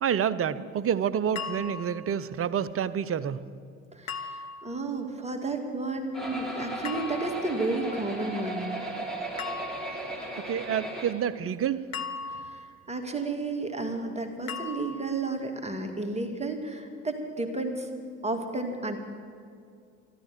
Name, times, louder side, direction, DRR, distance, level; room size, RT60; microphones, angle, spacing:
voice 1, 0.0-3.4 9.5-9.6 10.4-11.8, right 8 dB, 35° right, 16 dB, 0.7 m, -28 dB
sound 1, 1.4-2.1 4.1-4.8 6.8-7.5 9.4-10.1 11.9-12.8 14.5-15.2, left 5 dB, 80° left, 1.1 m, -38 dB
voice 2, 3.9-8.7 12.3-17.9 18.2-19.0, right 2 dB, 15° right, 4 dB, 2.2 m, -32 dB
sound 2, 6.1-11.1, right 2 dB, ahead, 3.3 m, -36 dB
13.5 x 12.5 x 7.7 m, 2.3 s
hypercardioid pair, 60°, 40 cm